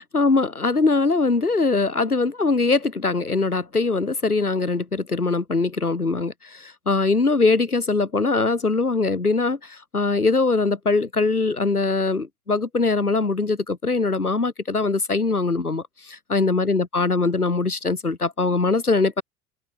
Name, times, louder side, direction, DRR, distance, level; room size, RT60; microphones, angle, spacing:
voice 1, 0.0-19.2, left 3 dB, 90° left, 3.6 m, -22 dB
figure-of-eight pair, 70°, 43 cm